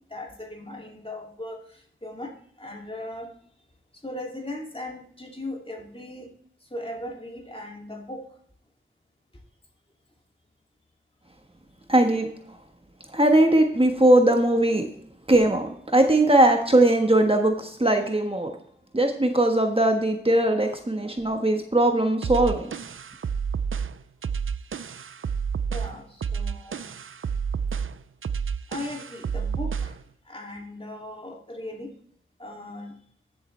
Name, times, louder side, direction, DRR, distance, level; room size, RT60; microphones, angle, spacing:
voice 1, 0.1-3.3 4.0-6.3 6.7-8.3 25.7-26.9 28.7-30.0 30.2-32.0 32.4-33.0, left 1 dB, 25° left, 0 dB, 2.6 m, -38 dB
voice 2, 11.9-12.3 13.1-14.9 15.3-18.5 18.9-22.7, right 1 dB, 25° right, 3 dB, 1.3 m, -20 dB
sound 1, 22.2-30.0, right 6 dB, 75° right, 0.5 m, -30 dB
14.0 x 7.5 x 3.3 m, 0.63 s
wide cardioid pair, 45°, 21 cm